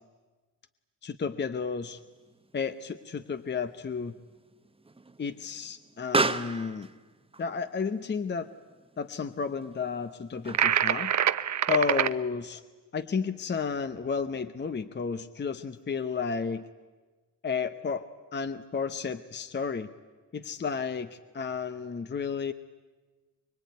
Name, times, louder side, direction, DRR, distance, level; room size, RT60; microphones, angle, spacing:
voice 1, 1.0-2.0 2.5-4.1 5.2-6.9 7.4-8.5 9.0-11.1 11.7-12.6 12.9-16.6 17.4-18.1 18.3-19.9 20.3-22.5, left 5 dB, 25° left, 11 dB, 0.8 m, -32 dB
Explosion, 1.9-11.0, right 3 dB, 15° right, 1.0 m, -36 dB
sound 1, 10.5-12.1, right 10 dB, 45° right, 0.8 m, -25 dB
24.5 x 22.5 x 9.4 m, 1.3 s
cardioid pair, 105°, 40 cm